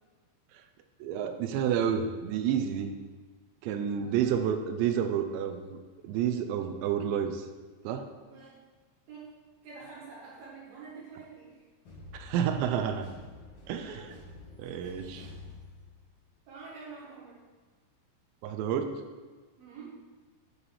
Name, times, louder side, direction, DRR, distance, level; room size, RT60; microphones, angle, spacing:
voice 1, 1.0-2.9 3.6-7.5 7.8-8.1 12.1-13.1 13.7-14.0 14.6-15.3 18.4-19.0, right 8 dB, 85° right, 7 dB, 2.7 m, -30 dB
voice 2, 8.2-8.5 9.1-9.2 9.6-11.6 13.9-14.0 16.5-17.3 19.6-19.9, right 4 dB, 65° right, -8 dB, 3.0 m, -46 dB
sound 1, 11.9-16.3, left 2 dB, 45° left, 2.2 m, -49 dB
9.8 x 4.9 x 3.3 m, 1.4 s
omnidirectional pair, 5.2 m